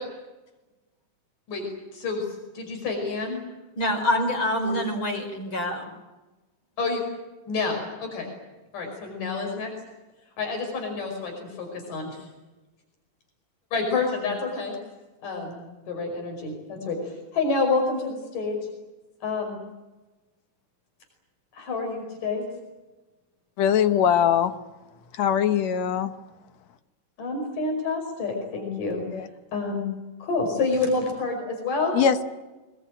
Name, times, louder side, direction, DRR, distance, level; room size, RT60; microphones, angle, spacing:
voice 1, 1.9-2.3 2.6-3.4 4.6-4.7 6.8-7.0 7.5-8.3 8.7-9.7 10.4-11.3 11.6-12.2 13.7-14.8 15.2-18.6 19.2-19.6 21.5-22.4 27.2-29.0 29.5-29.8 30.2-31.9, left 3 dB, 85° left, 6.9 m, -28 dB
voice 2, 3.8-5.9, left 1 dB, 35° left, 5.7 m, -26 dB
voice 3, 23.6-24.5 25.2-26.1 29.1-29.3 31.9-32.3, left 8 dB, 65° left, 2.2 m, -21 dB
26.0 x 20.5 x 9.1 m
omnidirectional pair, 3.7 m